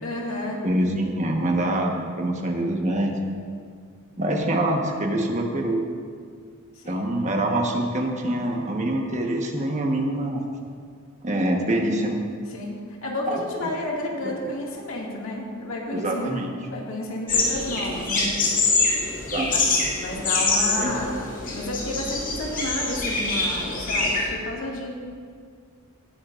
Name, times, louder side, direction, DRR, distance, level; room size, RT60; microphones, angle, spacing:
voice 1, 0.0-0.6 6.7-7.1 12.5-16.4 16.7-18.3 19.5-19.6 20.0-24.9, left 1 dB, 70° left, -3 dB, 2.2 m, -31 dB
voice 2, 0.6-3.2 4.2-5.8 6.9-10.4 11.2-12.2 13.3-13.4 14.2-14.3 15.9-16.5 19.3-19.5 20.8-21.0, right 1 dB, 35° right, 1 dB, 1.3 m, -25 dB
sound 1, 17.3-24.3, left 3 dB, 35° left, 2.4 m, -25 dB
18.5 x 11.5 x 2.6 m, 2.1 s
head